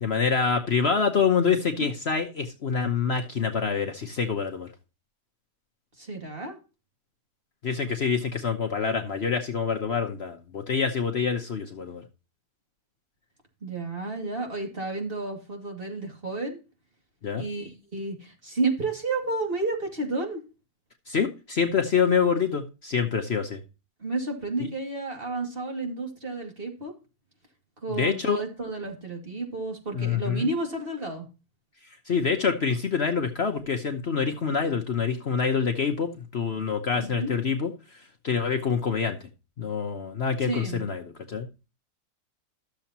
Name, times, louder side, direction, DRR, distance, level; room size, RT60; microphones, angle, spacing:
voice 1, 0.0-4.7 7.6-12.0 17.2-17.4 21.1-23.6 24.6-24.7 27.9-28.4 29.9-30.5 32.1-39.2 39.6-41.0 41.3-41.5, left 6 dB, 50° left, 5 dB, 1.1 m, -26 dB
voice 2, 6.0-6.6 13.6-16.6 17.4-20.4 24.0-26.9 27.8-31.2 36.9-37.3 40.4-40.8, right 3 dB, 35° right, 1 dB, 2.5 m, -31 dB
13.0 x 7.0 x 2.9 m, 0.30 s
omnidirectional pair, 1.6 m